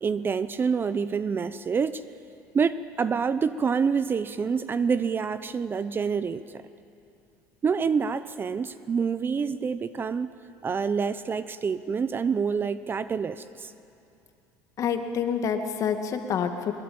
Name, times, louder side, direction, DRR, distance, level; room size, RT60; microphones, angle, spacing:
voice 1, 0.0-2.0 2.5-6.6 7.6-10.3 10.6-13.7, right 6 dB, 30° right, 14 dB, 0.7 m, -27 dB
voice 2, 14.8-16.7, left 7 dB, 45° left, 6 dB, 2.1 m, -27 dB
22.0 x 22.0 x 8.7 m, 2.6 s
supercardioid pair, 110°, 8 cm